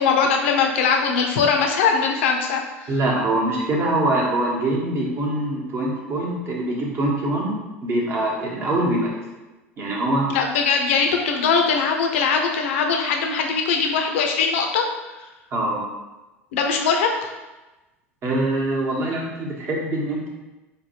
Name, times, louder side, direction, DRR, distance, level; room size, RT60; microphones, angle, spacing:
voice 1, 0.0-2.9 10.3-14.8 16.5-17.3, left 5 dB, 65° left, 2 dB, 0.6 m, -21 dB
voice 2, 2.9-9.2 9.8-10.3 15.5-15.8 18.2-20.3, right 1 dB, 35° right, -2 dB, 1.0 m, -24 dB
5.0 x 2.1 x 2.9 m, 1.1 s
figure-of-eight pair, 75°, 7 cm